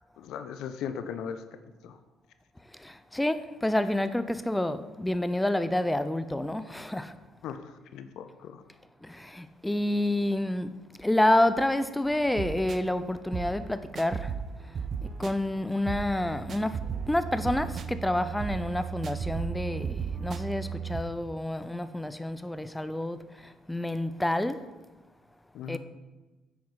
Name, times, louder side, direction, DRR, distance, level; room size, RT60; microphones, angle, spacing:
voice 1, 0.0-1.4 1.8-2.0 7.4-8.6 25.5-25.8, left 7 dB, 65° left, 0.7 m, -38 dB
voice 2, 2.8-7.1 9.0-10.7 11.0-14.3 15.2-16.8 17.1-23.2 23.7-24.6 25.7-25.8, left 1 dB, 10° left, 0.6 m, -28 dB
sound 1, 12.0-21.0, right 6 dB, 45° right, 0.7 m, -36 dB
9.5 x 8.5 x 4.1 m
hypercardioid pair, 50°, 0 cm